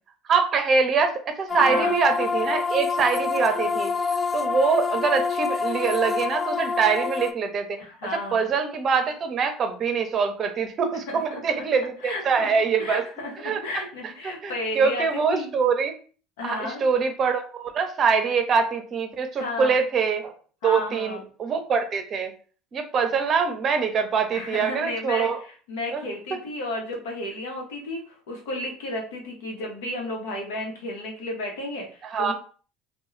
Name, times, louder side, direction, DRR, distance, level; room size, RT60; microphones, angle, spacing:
voice 1, 0.3-3.9 4.3-7.8 8.3-13.0 13.4-13.8 14.2-16.0 16.4-20.3 20.6-22.3 22.7-25.4 25.9-26.0 32.0-32.3, right 5 dB, 45° right, 7 dB, 0.6 m, -24 dB
sound 1, 1.5-7.3, left 5 dB, 25° left, 0.3 m, -26 dB
voice 2, 1.6-1.9 7.8-8.5 11.1-11.6 12.0-12.2 12.8-13.3 13.6-15.5 16.4-16.8 19.4-19.8 20.6-21.2 24.3-32.3, left 2 dB, 80° left, 1 dB, 0.9 m, -33 dB
2.3 x 2.2 x 3.1 m, 0.40 s
hypercardioid pair, 75°, 0 cm